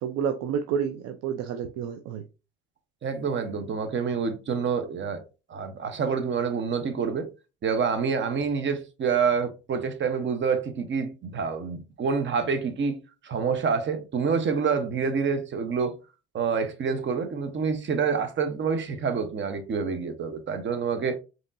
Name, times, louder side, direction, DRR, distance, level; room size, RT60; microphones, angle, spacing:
voice 1, 0.0-2.2, right 7 dB, 60° right, 0.5 m, -29 dB
voice 2, 3.0-5.2 5.5-7.3 7.6-13.0 13.2-16.0 16.3-21.2, right 5 dB, 40° right, 0.9 m, -27 dB
5.1 x 2.9 x 2.6 m
hypercardioid pair, 55°, 29 cm